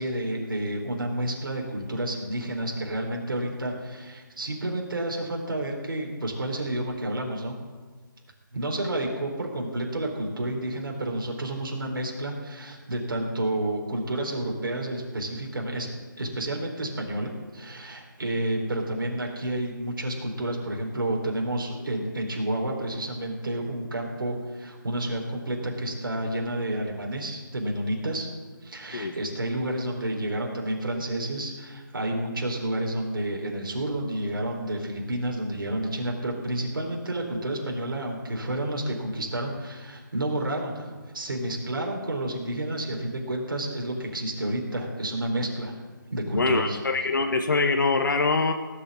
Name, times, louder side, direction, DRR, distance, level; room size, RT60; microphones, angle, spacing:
voice 1, 0.0-7.5 8.5-15.9 16.2-28.3 28.6-45.8 46.1-46.8, right 1 dB, 70° right, 0 dB, 3.9 m, -30 dB
voice 2, 46.3-48.5, left 3 dB, 60° left, 5 dB, 1.1 m, -24 dB
18.0 x 6.8 x 8.5 m, 1.4 s
hypercardioid pair, 170°, 12 cm